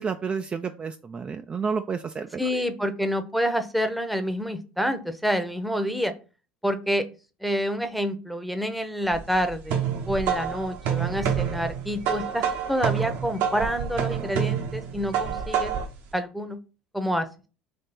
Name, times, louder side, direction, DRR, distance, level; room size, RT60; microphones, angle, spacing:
voice 1, 0.0-2.6, right 5 dB, 30° right, 7 dB, 0.3 m, -30 dB
voice 2, 2.4-6.1 6.6-7.0 7.4-9.8 10.1-15.7 16.1-16.6 16.9-17.2, equal, ahead, 8 dB, 0.8 m, -27 dB
sound 1, 9.1-16.0, right 8 dB, 65° right, 0.9 m, -28 dB
3.4 x 3.3 x 4.2 m, 0.34 s
hypercardioid pair, 70°, 4 cm